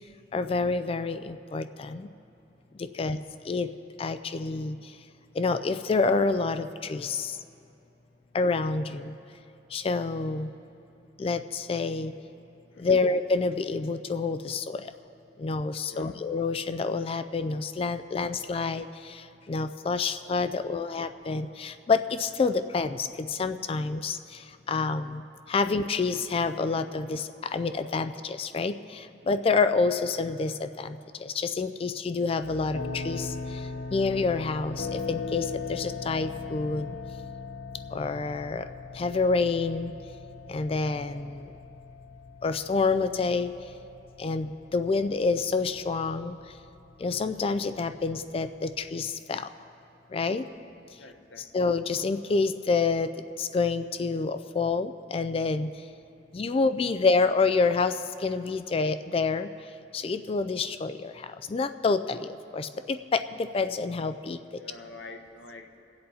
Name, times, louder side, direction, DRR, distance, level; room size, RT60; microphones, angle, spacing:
voice 1, 0.3-2.1 2.8-3.2 3.5-3.7 4.0-5.0 5.3-7.4 8.3-9.1 9.7-10.5 11.2-12.1 12.8-14.9 15.4-37.0 37.9-38.7 38.9-39.9 40.5-41.5 42.4-43.5 44.2-46.6 47.0-49.5 50.1-50.5 51.4-53.1 53.4-55.9 56.3-64.4, left 4 dB, 30° left, 11 dB, 0.3 m, -28 dB
voice 2, 12.7-13.1 15.9-16.2 50.4-50.7 51.0-51.6 64.6-65.8, left 3 dB, 85° left, 4 dB, 1.0 m, -47 dB
sound 1, 32.4-48.9, left 4 dB, 55° left, 0.7 m, -40 dB
22.0 x 7.8 x 4.1 m, 2.7 s
head